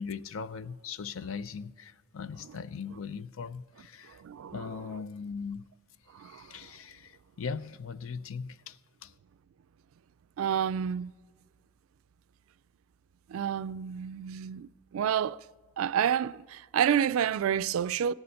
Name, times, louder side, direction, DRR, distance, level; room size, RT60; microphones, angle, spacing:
voice 1, 0.0-4.2 4.5-5.7 6.2-9.1, left 5 dB, 70° left, 0.5 m, -39 dB
voice 2, 4.2-4.5 6.1-6.5 10.4-11.1 13.3-15.4 15.8-18.1, right 9 dB, 75° right, 0.3 m, -29 dB
17.0 x 6.9 x 6.5 m
head